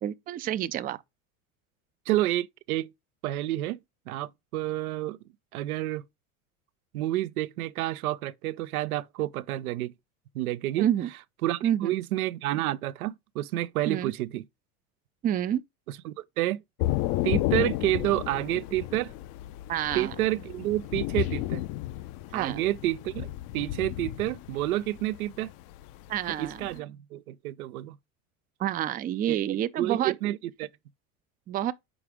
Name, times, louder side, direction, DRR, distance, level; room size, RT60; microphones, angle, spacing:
voice 1, 0.0-1.0 10.8-11.1 11.6-11.9 13.9-14.1 15.2-15.6 19.7-20.1 22.3-22.6 26.1-26.7 28.6-30.1 31.5-31.7, right 11 dB, 20° right, 0.4 m, -28 dB
voice 2, 2.1-2.9 3.2-3.8 4.1-5.2 5.5-6.0 6.9-9.9 10.3-10.9 11.4-14.4 16.0-16.6 17.2-19.1 19.9-21.6 22.3-23.3 23.5-25.5 26.3-28.0 29.3-30.7, right 15 dB, 80° right, 0.6 m, -29 dB
Thunder / Rain, 16.8-26.8, left 16 dB, 55° left, 0.6 m, -32 dB
4.9 x 4.9 x 4.9 m
hypercardioid pair, 85°, 42 cm